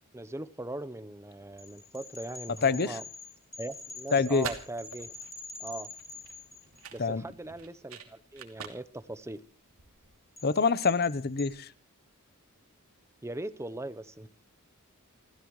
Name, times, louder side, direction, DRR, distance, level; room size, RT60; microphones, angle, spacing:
voice 1, 0.1-3.0 3.6-5.1 5.6-5.9 6.9-9.4 13.2-14.3, right 1 dB, 15° right, 0.8 m, -40 dB
sound 1, 1.6-7.0 10.4-11.5, left 3 dB, 30° left, 6.7 m, -45 dB
voice 2, 2.6-3.0 4.1-4.5 7.0-7.2 10.4-11.7, left 4 dB, 45° left, 0.8 m, -26 dB
sound 2, 4.1-10.2, right 5 dB, 70° right, 2.7 m, -45 dB
29.5 x 14.0 x 3.1 m
head